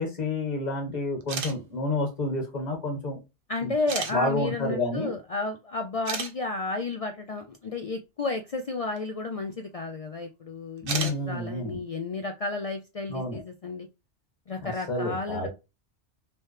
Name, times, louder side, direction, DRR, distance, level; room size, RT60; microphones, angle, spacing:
voice 1, 0.0-3.2 3.6-3.7 4.1-5.1 10.8-11.8 13.1-13.4 14.6-15.5, left 2 dB, 40° left, 2 dB, 1.5 m, -29 dB
sound 1, 1.2-1.5 2.6-2.7 3.9-4.1 5.5-5.6 6.0-6.3 9.0-9.1 10.8-11.2, right 5 dB, 55° right, 0.9 m, -31 dB
voice 2, 3.5-13.9 14.5-15.5, left 3 dB, 60° left, 6 dB, 0.3 m, -32 dB
4.5 x 3.1 x 3.2 m, 0.26 s
omnidirectional pair, 1.2 m